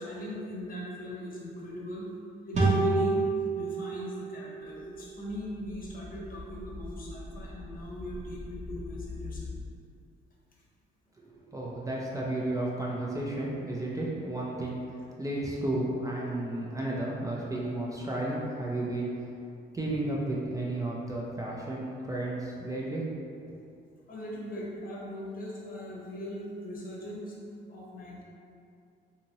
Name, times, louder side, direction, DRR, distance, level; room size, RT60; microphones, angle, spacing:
voice 1, 0.0-2.1 2.4-3.2 3.5-9.5 10.5-10.6 24.1-27.4 27.7-28.2, left 1 dB, 45° left, -4 dB, 0.8 m, -40 dB
sound 1, 2.5-5.9, right 3 dB, 35° right, 0.7 m, -29 dB
sound 2, 4.6-9.6, left 2 dB, 20° left, 1.0 m, -43 dB
voice 2, 11.2-19.1 19.7-23.1, right 1 dB, 15° right, -5 dB, 0.4 m, -33 dB
2.7 x 2.7 x 3.0 m, 2.5 s
cardioid pair, 90°, 20 cm